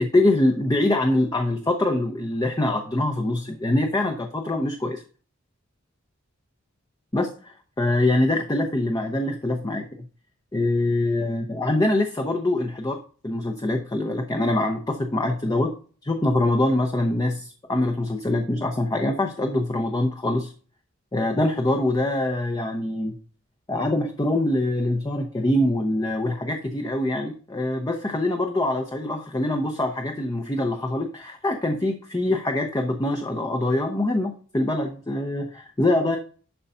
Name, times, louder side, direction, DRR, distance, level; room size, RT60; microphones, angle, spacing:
voice 1, 0.0-5.0 7.1-9.9 10.5-15.7 16.0-20.5 21.1-23.2 23.7-36.2, left 1 dB, 20° left, 4 dB, 0.8 m, -24 dB
11.5 x 4.0 x 5.6 m, 0.41 s
head